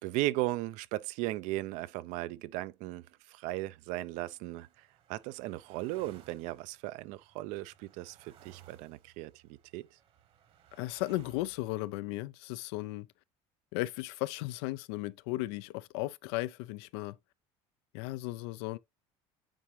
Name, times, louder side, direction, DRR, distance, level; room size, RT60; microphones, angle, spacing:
voice 1, 0.0-9.9, right 17 dB, 70° right, 0.4 m, -37 dB
sound 1, 4.1-12.0, right 9 dB, 50° right, 1.2 m, -61 dB
voice 2, 10.7-13.1 13.7-17.2 17.9-18.8, left 19 dB, 90° left, 0.4 m, -36 dB
8.9 x 3.6 x 3.1 m
cardioid pair, 125°, 13 cm